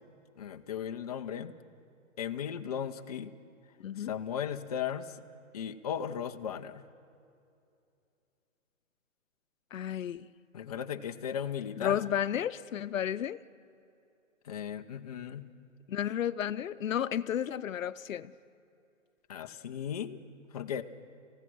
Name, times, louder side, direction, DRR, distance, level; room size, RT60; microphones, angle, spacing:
voice 1, 0.4-1.5 2.2-3.3 4.0-5.2 5.5-6.8 10.5-12.0 14.4-15.5 19.3-20.2 20.5-20.8, left 8 dB, 30° left, 0.6 m, -36 dB
voice 2, 3.8-4.1 9.7-10.3 11.8-13.4 15.9-18.3, left 10 dB, 90° left, 0.7 m, -32 dB
29.0 x 16.0 x 6.2 m
hypercardioid pair, 165°, 38 cm